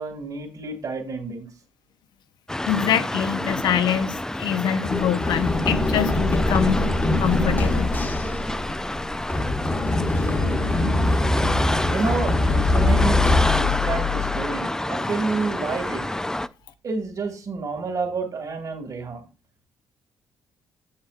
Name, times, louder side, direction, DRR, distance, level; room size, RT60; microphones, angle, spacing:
voice 1, 0.0-1.5 10.1-10.8 11.9-16.1 16.8-19.2, right 4 dB, 50° right, 2.2 m, -29 dB
sound 1, 2.5-16.5, left 1 dB, 10° left, 0.4 m, -27 dB
voice 2, 2.7-6.8 7.2-7.9, left 9 dB, 70° left, 0.7 m, -24 dB
Run, 4.8-14.6, left 3 dB, 25° left, 1.1 m, -24 dB
7.5 x 7.3 x 2.5 m
supercardioid pair, 70°, 8 cm